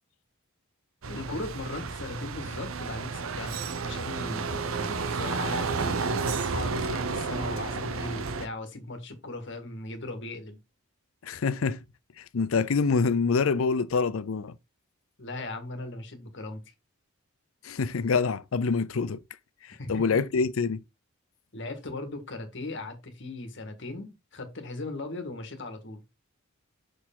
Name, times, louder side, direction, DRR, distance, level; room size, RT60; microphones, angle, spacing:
sound 1, 1.0-8.5, right 4 dB, 90° right, 0.8 m, -31 dB
voice 1, 1.1-6.0 6.5-10.6 15.2-16.6 19.8-20.2 21.5-26.0, left 2 dB, 65° left, 1.6 m, -38 dB
voice 2, 11.2-11.8 12.2-14.6 17.6-19.2 19.9-20.8, left 4 dB, 90° left, 0.5 m, -26 dB
6.2 x 4.7 x 3.7 m
head